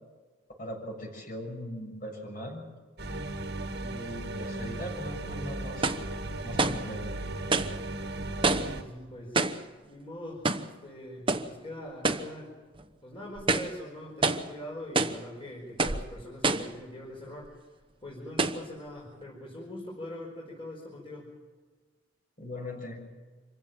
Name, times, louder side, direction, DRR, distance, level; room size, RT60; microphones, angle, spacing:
voice 1, 0.6-2.6 3.8-5.9 6.4-7.1 22.4-23.0, left 1 dB, 45° left, 1 dB, 7.4 m, -40 dB
sound 1, 3.0-8.8, right 2 dB, 55° right, 1.7 m, -36 dB
sound 2, 5.8-6.1 6.6-6.9 7.5-7.8 8.4-8.8 9.3-9.7 10.4-10.7 11.3-11.5 12.0-12.3 12.8-12.9 13.4-13.8 14.2-14.5 14.9-15.2 15.8-16.1 16.4-16.8 17.4-17.5 18.4-18.6, right 3 dB, 25° right, 1.1 m, -27 dB
voice 2, 8.5-10.5 10.8-12.5 13.0-17.6 18.0-21.3, left 1 dB, 30° left, -3 dB, 5.1 m, -43 dB
27.0 x 16.0 x 7.5 m, 1.4 s
head